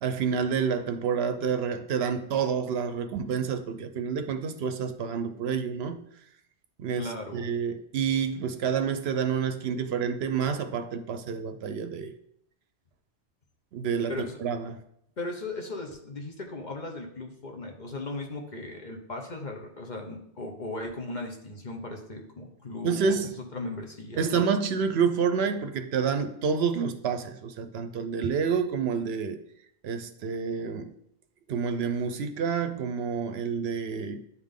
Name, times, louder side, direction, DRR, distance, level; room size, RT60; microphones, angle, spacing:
voice 1, 0.0-6.1 6.8-12.1 13.7-14.1 14.4-14.8 22.8-23.4 24.2-29.4 29.8-30.9 31.5-34.2, right 6 dB, 70° right, 0.8 m, -28 dB
voice 2, 7.0-7.5 14.1-14.4 15.2-23.2 23.5-24.4, left 2 dB, 45° left, 1.0 m, -37 dB
9.5 x 3.6 x 3.6 m
omnidirectional pair, 1.2 m